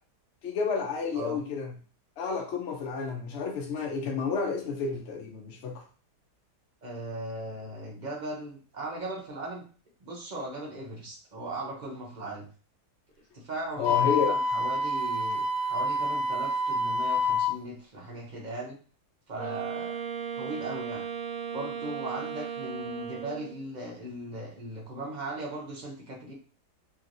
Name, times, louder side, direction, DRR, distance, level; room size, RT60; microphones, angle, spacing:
voice 1, 0.4-1.7 2.2-5.8 13.8-14.3, left 5 dB, 65° left, 1 dB, 0.7 m, -30 dB
voice 2, 6.8-9.6 10.0-12.5 13.3-18.8 19.3-20.0 20.3-21.0 21.5-26.3, right 1 dB, 40° right, -2 dB, 0.7 m, -38 dB
Wind instrument woodwind instrument, 13.8-17.6, left 2 dB, 90° left, 1.2 m, -27 dB
Wind instrument woodwind instrument 2, 19.4-23.7, right 7 dB, 75° right, 1.1 m, -36 dB
3.0 x 2.9 x 2.6 m, 0.39 s
omnidirectional pair, 1.8 m